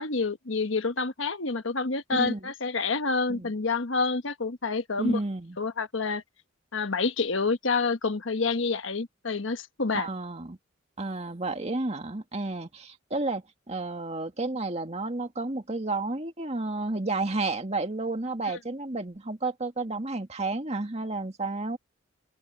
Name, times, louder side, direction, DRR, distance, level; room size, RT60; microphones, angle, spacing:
voice 1, 0.0-5.2 5.6-6.2 6.7-10.1, left 4 dB, 70° left, 1.3 m, -28 dB
voice 2, 2.1-2.5 3.3-3.5 5.0-5.6 9.9-10.6 11.0-21.8, right 2 dB, 35° right, 2.0 m, -31 dB
open air
head